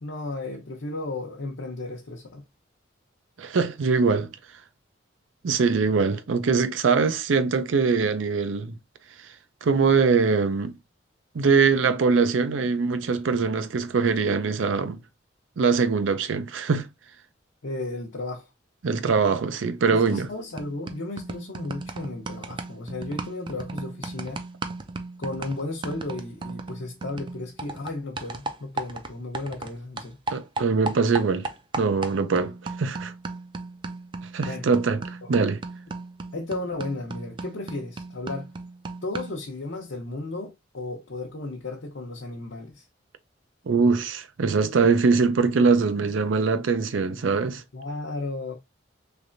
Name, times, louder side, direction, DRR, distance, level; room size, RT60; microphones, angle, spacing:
voice 1, 0.0-2.4 17.6-18.5 19.9-24.4 25.2-30.2 34.4-34.6 35.2-35.3 36.3-38.5 39.0-42.8 47.7-48.5, left 2 dB, 75° left, 0.7 m, -34 dB
voice 2, 3.4-4.3 5.4-8.8 9.6-10.7 11.3-15.0 15.6-16.9 18.8-20.3 30.3-31.5 31.8-33.1 34.3-35.6 43.7-47.6, right 5 dB, 80° right, 0.5 m, -22 dB
sound 1, 20.1-20.3 20.6-29.7 30.0-39.5, right 3 dB, 25° right, 0.3 m, -36 dB
3.3 x 3.2 x 2.5 m
head